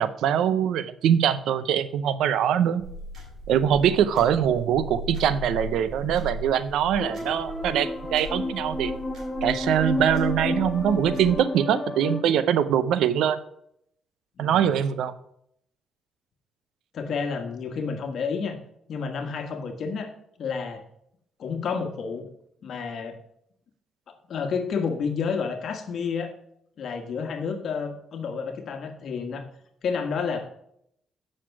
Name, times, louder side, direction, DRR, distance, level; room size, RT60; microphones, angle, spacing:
voice 1, 0.0-2.8 3.5-8.9 9.4-13.4 14.4-15.2, right 9 dB, 80° right, 13 dB, 0.6 m, -23 dB
sound 1, 2.8-11.4, equal, 60° right, 3.5 m, -38 dB
sound 2, 7.0-12.2, left 2 dB, 15° left, 1.2 m, -31 dB
voice 2, 14.4-14.7 16.9-18.6 18.9-20.1 20.4-20.8 21.4-22.3 22.6-23.2 24.1-26.3 26.8-29.4 29.8-30.4, left 5 dB, 60° left, 6 dB, 1.4 m, -30 dB
7.7 x 6.5 x 4.7 m, 0.72 s
cardioid pair, 90°, 0 cm